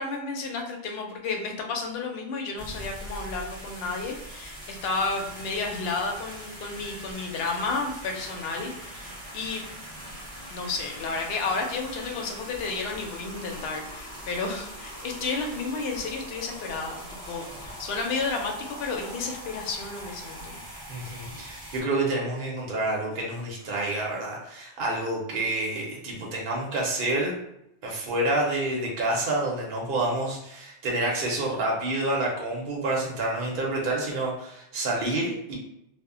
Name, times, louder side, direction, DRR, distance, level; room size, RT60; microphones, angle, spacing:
voice 1, 0.0-9.6 10.5-17.0 17.3-20.5, left 4 dB, 65° left, 2 dB, 0.7 m, -32 dB
sound 1, 2.6-21.8, equal, 20° right, 0.7 m, -41 dB
voice 2, 20.9-27.3 27.8-35.6, right 2 dB, 60° right, -2 dB, 0.7 m, -28 dB
2.1 x 2.0 x 3.6 m, 0.81 s
omnidirectional pair, 1.2 m